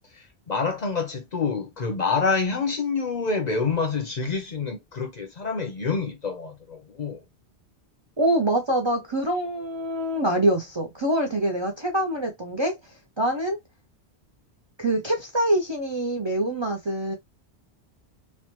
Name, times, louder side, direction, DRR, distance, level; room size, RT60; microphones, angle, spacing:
voice 1, 0.1-7.2, left 4 dB, 45° left, 0.7 m, -27 dB
voice 2, 8.2-12.8 13.2-13.6 14.8-17.1, right 1 dB, 35° right, 0.5 m, -25 dB
3.2 x 2.1 x 2.9 m
omnidirectional pair, 1.1 m